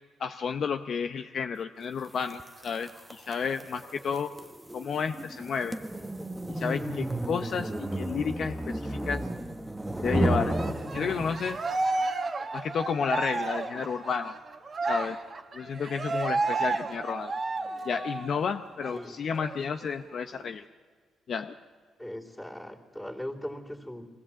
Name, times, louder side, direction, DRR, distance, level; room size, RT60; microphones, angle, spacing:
voice 1, 0.2-4.3 4.7-5.8 6.5-9.3 10.0-10.6 10.9-11.6 12.5-14.4 14.8-15.2 15.5-17.3 17.8-20.7 21.3-21.5, left 6 dB, 55° left, 7 dB, 0.6 m, -31 dB
sound 1, 2.3-11.7, right 1 dB, 5° right, 0.9 m, -33 dB
Cheering, 10.5-18.4 18.8-19.0 19.4-20.4, right 3 dB, 40° right, 1.2 m, -32 dB
voice 2, 22.0-24.1, left 1 dB, 10° left, -4 dB, 3.0 m, -39 dB
23.5 x 16.5 x 7.4 m, 1.5 s
cardioid pair, 90°, 0 cm